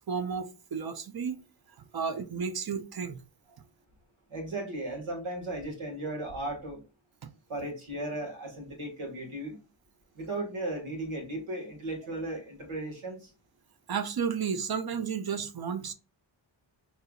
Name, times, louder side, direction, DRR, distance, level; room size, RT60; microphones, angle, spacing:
voice 1, 0.1-1.4 1.9-3.2 7.2-7.3 13.9-15.9, right 6 dB, 50° right, 0.6 m, -32 dB
voice 2, 4.3-6.8 7.5-9.6 10.1-13.3, right 1 dB, 90° right, 1.7 m, -36 dB
5.5 x 2.8 x 2.3 m
wide cardioid pair, 100°, 47 cm